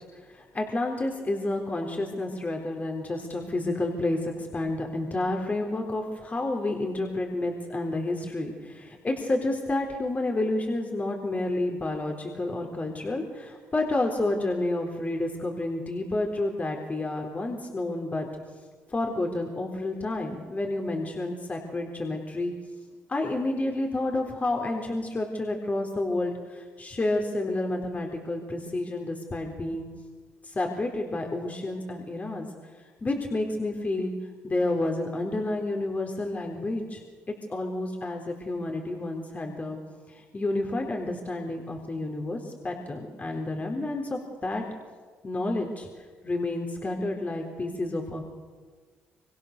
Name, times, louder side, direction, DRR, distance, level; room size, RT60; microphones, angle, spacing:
voice 1, 0.1-18.3 18.9-22.5 23.1-29.9 30.4-32.5 33.0-34.1 34.4-37.0 37.5-39.8 40.1-44.6 45.2-48.3, left 2 dB, 30° left, 2 dB, 4.0 m, -30 dB
25.5 x 24.5 x 6.8 m, 1.5 s
supercardioid pair, 65°, 5 cm